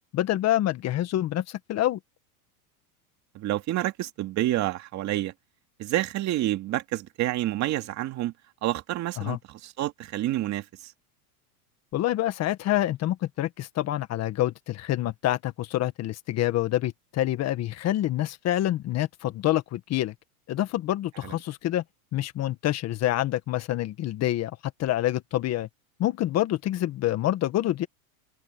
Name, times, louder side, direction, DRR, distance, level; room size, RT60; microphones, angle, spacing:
voice 1, 0.1-2.0 9.2-9.4 11.9-20.1 20.5-21.8 22.1-24.5 24.8-25.7 26.0-27.9, left 14 dB, 35° left, 1.7 m, -27 dB
voice 2, 3.3-5.3 5.8-8.3 8.6-10.9 21.2-21.3, right 15 dB, 40° right, 2.3 m, -28 dB
supercardioid pair, 130°, 44 cm